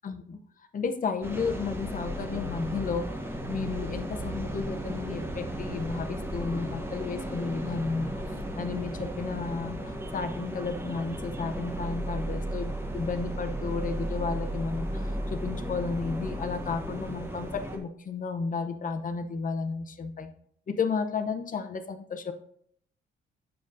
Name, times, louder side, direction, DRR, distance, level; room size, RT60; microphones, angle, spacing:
voice 1, 0.0-0.4 0.7-3.2 3.5-8.2 8.5-20.3 20.7-22.3, left 4 dB, 40° left, 7 dB, 0.7 m, -33 dB
sound 1, 1.2-17.8, right 1 dB, 10° right, 1.0 m, -35 dB
7.4 x 6.8 x 2.6 m, 0.64 s
cardioid pair, 90°, 20 cm